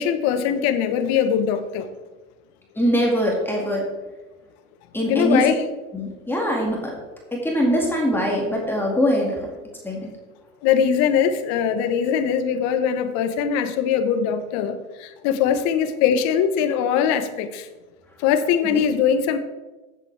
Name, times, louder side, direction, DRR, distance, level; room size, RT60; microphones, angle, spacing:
voice 1, 0.0-1.9 5.1-5.6 10.6-17.7 18.2-19.4, left 8 dB, 45° left, 10 dB, 1.1 m, -21 dB
voice 2, 2.8-3.9 4.9-5.5 5.9-7.0 7.3-9.4 9.8-10.1 18.7-18.8, equal, 5° left, -1 dB, 2.0 m, -22 dB
15.0 x 7.5 x 3.4 m, 1.2 s
hypercardioid pair, 120°, 39 cm